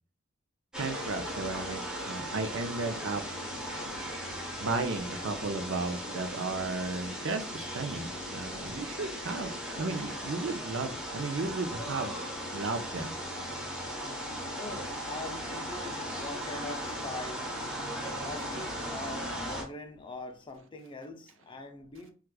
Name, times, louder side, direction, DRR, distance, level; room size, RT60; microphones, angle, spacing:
sound 1, 0.7-19.6, equal, 5° right, 0.9 m, -37 dB
voice 1, 0.8-3.2 4.6-12.2 12.5-13.1, right 3 dB, 65° right, 0.5 m, -34 dB
voice 2, 13.6-22.1, left 2 dB, 25° left, 0.5 m, -43 dB
4.5 x 2.4 x 2.3 m
head